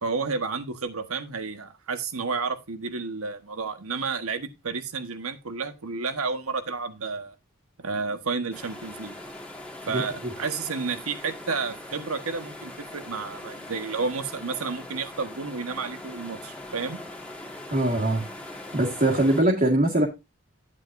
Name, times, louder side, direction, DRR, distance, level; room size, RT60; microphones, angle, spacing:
voice 1, 0.0-7.3 7.8-9.1 9.9-17.0, right 4 dB, 85° right, 1.4 m, -31 dB
sound 1, 8.5-19.4, left 1 dB, 5° left, 2.0 m, -41 dB
voice 2, 9.9-10.3 17.7-18.2 18.7-20.1, right 1 dB, 40° right, 2.0 m, -22 dB
9.8 x 8.9 x 2.7 m
head